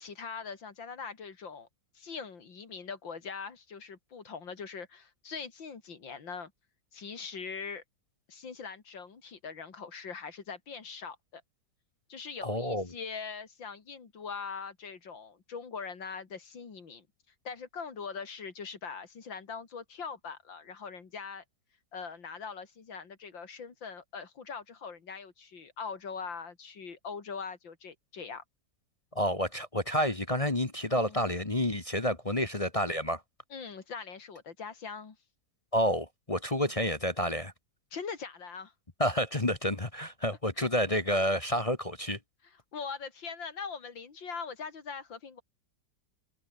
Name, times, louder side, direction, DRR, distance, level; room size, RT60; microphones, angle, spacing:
voice 1, 0.0-1.7 1.9-6.5 6.9-7.8 8.3-11.4 12.1-17.1 17.5-21.4 21.9-28.4 31.0-31.3 33.5-35.2 37.9-38.7 40.6-40.7 42.7-45.4, left 5 dB, 85° left, 3.4 m, -42 dB
voice 2, 12.4-12.9 29.1-33.2 35.7-37.5 39.0-42.2, equal, 20° left, 1.4 m, -29 dB
omnidirectional pair, 2.0 m